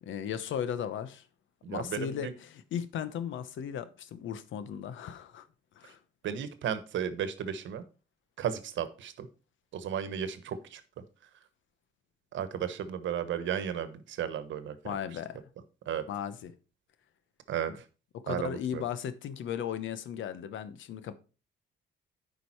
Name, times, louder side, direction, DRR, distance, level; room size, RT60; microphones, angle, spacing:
voice 1, 0.0-1.3 1.7-5.5 5.8-6.0 14.8-15.4 16.1-16.5 18.1-21.1, left 9 dB, 75° left, 0.9 m, -36 dB
voice 2, 1.6-2.3 6.2-7.8 8.4-9.3 9.7-10.8 12.3-14.9 15.9-16.0 17.5-17.8 18.3-18.8, right 9 dB, 70° right, 1.2 m, -34 dB
9.6 x 5.2 x 4.5 m
cardioid pair, 90°, 20 cm